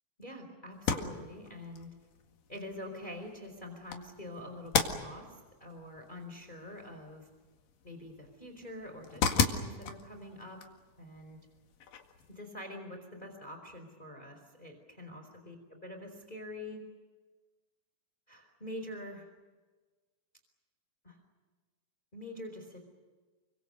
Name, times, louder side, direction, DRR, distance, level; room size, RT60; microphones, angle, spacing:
voice 1, 0.2-1.9 2.5-7.3 7.8-10.6 11.0-11.4 12.3-16.8 18.3-19.3 21.0-21.2 22.1-22.8, left 1 dB, 15° left, 5 dB, 4.3 m, -45 dB
sound 1, 0.7-12.4, left 6 dB, 75° left, 3.6 m, -37 dB
29.5 x 25.0 x 6.6 m, 1.3 s
omnidirectional pair, 3.9 m